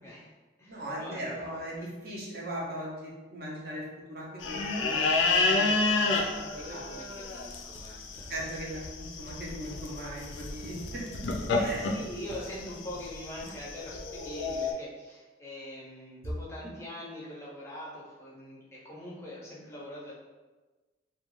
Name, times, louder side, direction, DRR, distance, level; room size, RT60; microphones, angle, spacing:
voice 1, 0.0-0.3 0.6-1.9 6.5-8.4 11.5-20.1, left 1 dB, 15° left, -6 dB, 0.5 m, -43 dB
voice 2, 0.7-6.4 6.7-6.8 8.3-11.0 11.5-11.8, equal, 55° right, -3 dB, 0.6 m, -39 dB
sound 1, 4.4-14.7, left 3 dB, 85° left, 0.4 m, -30 dB
2.3 x 2.2 x 3.0 m, 1.2 s
head